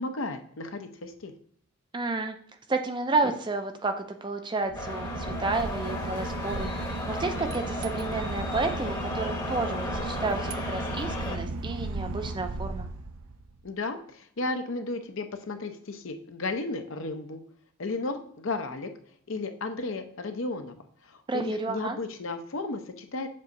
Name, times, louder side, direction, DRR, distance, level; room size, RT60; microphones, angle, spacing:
voice 1, 0.0-1.3 13.6-17.4 17.8-18.9 19.3-20.8 21.0-23.3, left 3 dB, 60° left, 7 dB, 0.7 m, -34 dB
voice 2, 1.9-2.4 2.7-6.8 7.1-12.9 21.3-22.0, right 3 dB, 20° right, 6 dB, 0.4 m, -31 dB
Boat Water vehicle / Engine, 4.6-13.6, right 2 dB, 75° right, 0.5 m, -35 dB
sound 1, 4.7-11.4, left 2 dB, 15° left, 0.9 m, -35 dB
7.5 x 2.8 x 5.2 m, 0.64 s
head